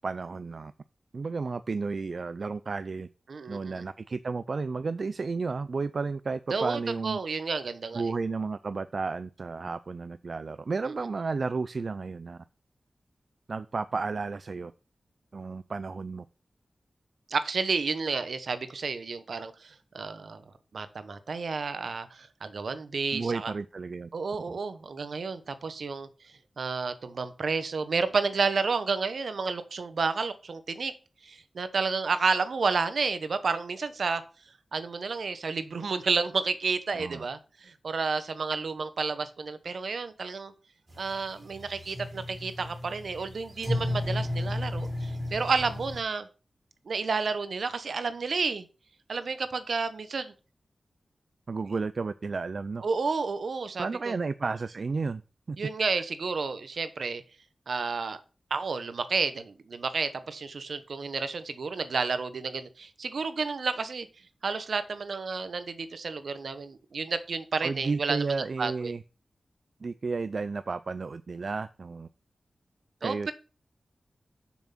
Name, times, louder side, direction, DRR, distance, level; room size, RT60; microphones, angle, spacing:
voice 1, 0.0-0.7 1.1-3.1 3.5-7.2 7.9-12.4 13.5-14.7 15.3-16.2 23.1-24.1 36.9-37.3 51.5-52.8 53.8-55.2 55.5-55.6 67.6-69.0 69.8-72.1 73.0-73.3, right 4 dB, 60° right, 13 dB, 0.4 m, -32 dB
voice 2, 3.3-3.8 6.5-8.0 17.3-20.4 20.7-23.5 24.1-26.1 26.6-30.9 31.2-34.2 34.7-40.5 41.0-46.3 46.9-48.7 49.1-50.3 52.8-54.1 55.6-57.2 57.7-58.2 58.5-64.1 64.4-68.3 68.6-68.9 73.0-73.3, right 4 dB, 75° right, 12 dB, 1.0 m, -31 dB
sound 1, 40.9-46.0, left 1 dB, 45° right, 3.4 m, -34 dB
7.2 x 6.2 x 5.8 m, 0.34 s
wide cardioid pair, 95°, 0 cm